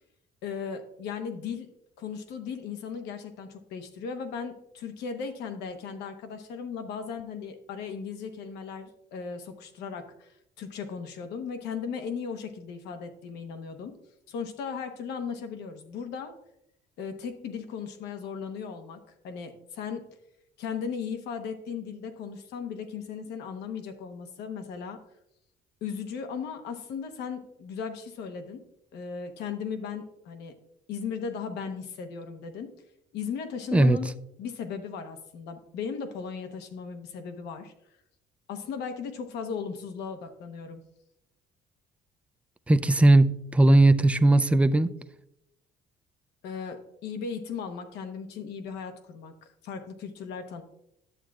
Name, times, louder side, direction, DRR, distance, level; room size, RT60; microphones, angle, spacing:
voice 1, 0.4-1.7 2.0-14.0 14.3-16.3 17.0-20.1 20.6-25.0 25.8-28.6 28.9-30.6 30.9-32.7 33.1-34.1 34.4-37.7 38.5-40.8 46.4-50.6, left 6 dB, 80° left, 8 dB, 1.0 m, -37 dB
voice 2, 42.7-44.9, right 2 dB, 5° right, 11 dB, 0.3 m, -19 dB
10.5 x 7.4 x 2.3 m, 0.81 s
cardioid pair, 110°, 17 cm